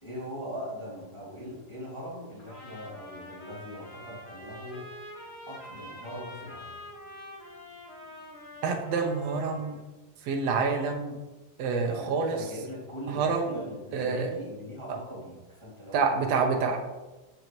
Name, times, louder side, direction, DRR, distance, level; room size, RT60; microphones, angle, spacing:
voice 1, 0.0-6.8 11.8-16.8, equal, 10° left, -7 dB, 2.0 m, -41 dB
Trumpet, 2.4-9.8, left 1 dB, 60° left, 0.6 m, -46 dB
voice 2, 8.6-9.8 10.2-11.2 11.6-12.4 13.1-13.5 13.9-14.3 15.9-16.8, right 4 dB, 75° right, 3 dB, 1.5 m, -27 dB
12.0 x 6.5 x 3.1 m, 1.1 s
omnidirectional pair, 4.1 m